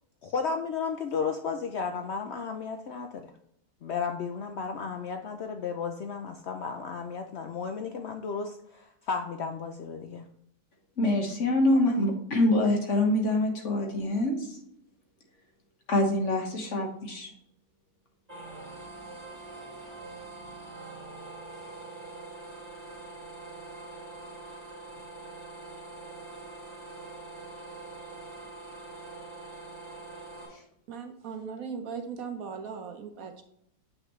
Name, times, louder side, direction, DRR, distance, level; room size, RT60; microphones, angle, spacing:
voice 1, 0.2-3.3 3.8-10.2, left 5 dB, 80° left, 5 dB, 0.6 m, -33 dB
voice 2, 11.0-14.6 15.9-17.3, left 1 dB, 45° left, 2 dB, 1.6 m, -25 dB
sound 1, 18.3-30.5, right 2 dB, 20° right, 2.6 m, -44 dB
voice 3, 30.9-33.4, right 6 dB, 60° right, 5 dB, 1.1 m, -38 dB
7.7 x 5.9 x 3.2 m, 0.74 s
omnidirectional pair, 1.8 m